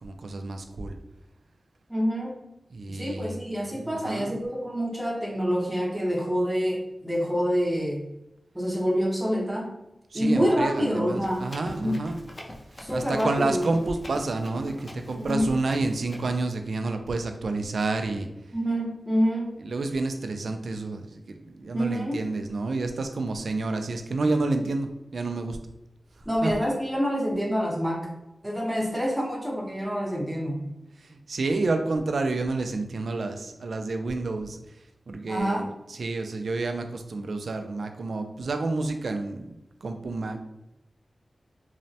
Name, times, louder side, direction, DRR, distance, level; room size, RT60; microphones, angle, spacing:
voice 1, 0.0-1.0 2.7-3.4 3.9-4.4 10.1-12.2 12.9-18.3 19.6-25.6 26.4-26.5 31.0-34.6 35.1-39.5 39.8-40.4, right 3 dB, 80° right, 6 dB, 0.3 m, -29 dB
voice 2, 1.9-2.4 2.9-8.0 8.5-9.7 10.1-11.5 11.8-12.0 12.8-13.6 15.2-15.5 18.5-19.6 21.7-22.2 26.3-28.1 28.4-30.6 35.3-35.7, equal, 10° right, -3 dB, 0.7 m, -27 dB
Run, 11.2-16.4, left 1 dB, 40° left, 0.5 m, -43 dB
3.1 x 2.0 x 2.7 m, 0.91 s
wide cardioid pair, 95°, 0 cm